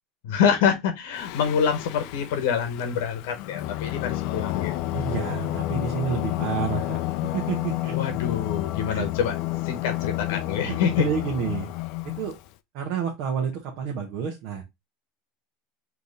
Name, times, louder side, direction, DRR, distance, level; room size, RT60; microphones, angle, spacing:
voice 1, 0.2-4.7 7.9-9.3 9.6-11.1, left 7 dB, 80° left, 1.0 m, -26 dB
Singing, 1.1-12.5, left 16 dB, 60° left, 0.4 m, -30 dB
voice 2, 4.9-8.0 8.9-9.1 10.7-11.7 12.0-12.4 12.7-14.6, right 7 dB, 60° right, 1.0 m, -30 dB
3.4 x 2.9 x 3.9 m
supercardioid pair, 130°, 0 cm